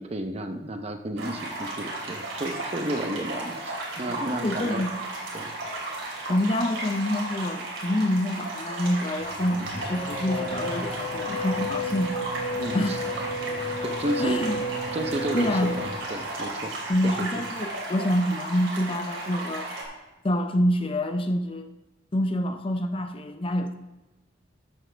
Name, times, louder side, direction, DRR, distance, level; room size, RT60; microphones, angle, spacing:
voice 1, 0.0-4.8 5.3-5.6 12.6-13.0 13.8-14.4 14.9-16.7 17.0-17.3, right 1 dB, 35° right, 7 dB, 0.8 m, -32 dB
sound 1, 1.2-19.8, right 2 dB, 85° right, 3.3 m, -35 dB
voice 2, 4.4-4.9 6.3-12.1 12.7-13.0 14.2-14.6 15.3-15.7 16.9-19.7 20.2-21.7 22.1-23.7, left 1 dB, 30° left, 7 dB, 0.5 m, -26 dB
Race car auto racing / Accelerating revving vroom, 9.2-16.5, left 1 dB, 80° left, 3.3 m, -32 dB
13.5 x 7.5 x 3.4 m, 1.1 s
head